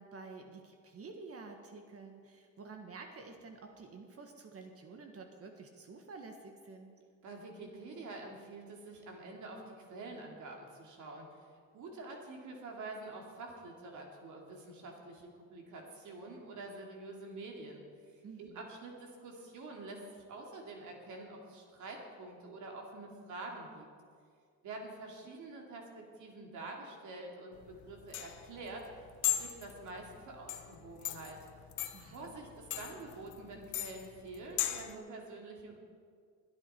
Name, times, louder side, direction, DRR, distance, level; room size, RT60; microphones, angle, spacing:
voice 1, 0.0-7.0 18.2-18.7 31.9-32.3, right 4 dB, 50° right, 4 dB, 1.5 m, -50 dB
voice 2, 7.2-11.4 11.7-23.9 24.6-28.9 29.2-31.4 32.1-35.8, right 2 dB, 75° right, 0 dB, 2.9 m, -47 dB
sound 1, 27.6-34.9, left 12 dB, 75° left, 0.9 m, -39 dB
21.5 x 9.3 x 4.5 m, 2.1 s
cardioid pair, 90°, 30 cm